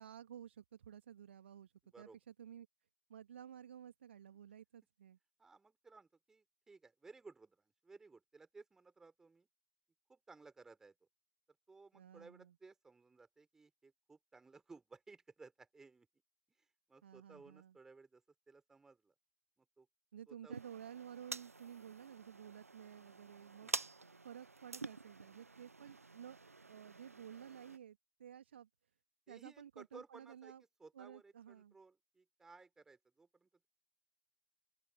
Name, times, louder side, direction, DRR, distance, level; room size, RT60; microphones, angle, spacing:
voice 1, 0.0-2.7 3.1-5.2 11.9-12.5 17.0-17.7 20.1-23.7 24.2-26.4 26.6-28.7 29.3-30.6 30.9-31.7, right 9 dB, 50° right, 1.6 m, -53 dB
voice 2, 1.8-2.2 5.4-9.5 10.1-10.9 11.7-16.1 16.6-19.1 19.6-19.9 20.3-20.6 23.6-23.9 29.3-30.5 30.8-33.7, right 4 dB, 5° right, 4.5 m, -59 dB
sound 1, 20.5-27.8, right 3 dB, 80° right, 0.6 m, -48 dB
open air
figure-of-eight pair, 120°, 8 cm